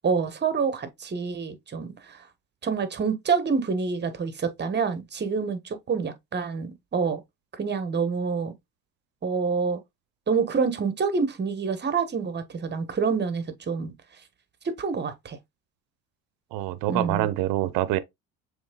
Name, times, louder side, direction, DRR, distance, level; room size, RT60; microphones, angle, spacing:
voice 1, 0.0-2.2 2.6-7.2 7.5-8.5 9.2-9.8 10.3-13.9 14.6-15.4 16.9-17.3, right 5 dB, 30° right, 1.2 m, -27 dB
voice 2, 16.5-18.0, right 14 dB, 70° right, 0.7 m, -25 dB
7.1 x 3.3 x 2.2 m
supercardioid pair, 95°, 35 cm